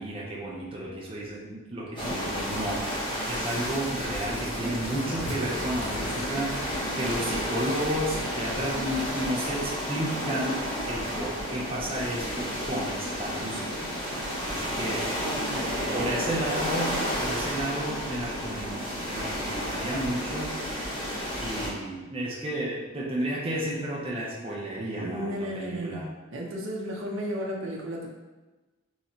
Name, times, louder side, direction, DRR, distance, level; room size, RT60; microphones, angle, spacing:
voice 1, 0.0-14.0 14.5-15.2 15.9-20.5 21.4-26.0, right 1 dB, 25° right, -4 dB, 0.6 m, -32 dB
sound 1, 2.0-21.7, equal, 20° left, 1.0 m, -32 dB
sound 2, 2.3-8.1, left 1 dB, 85° left, 1.5 m, -42 dB
voice 2, 15.2-16.2 25.0-26.1 26.3-28.1, equal, 70° right, -1 dB, 0.8 m, -33 dB
3.7 x 3.0 x 4.3 m, 1.2 s
head